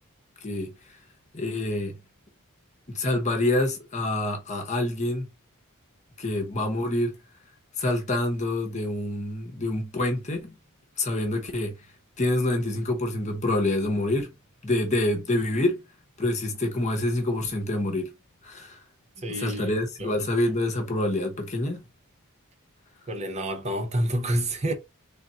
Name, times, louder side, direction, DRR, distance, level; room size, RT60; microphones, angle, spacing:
voice 1, 1.3-1.9 2.9-5.3 6.2-7.1 7.8-10.5 11.0-11.7 12.2-14.3 14.6-15.8 16.2-18.1 18.4-18.8 19.3-21.8, left 1 dB, 30° left, 1.0 m, -26 dB
voice 2, 19.2-20.2 23.1-24.7, right 1 dB, 30° right, 0.7 m, -29 dB
3.6 x 2.5 x 4.2 m
head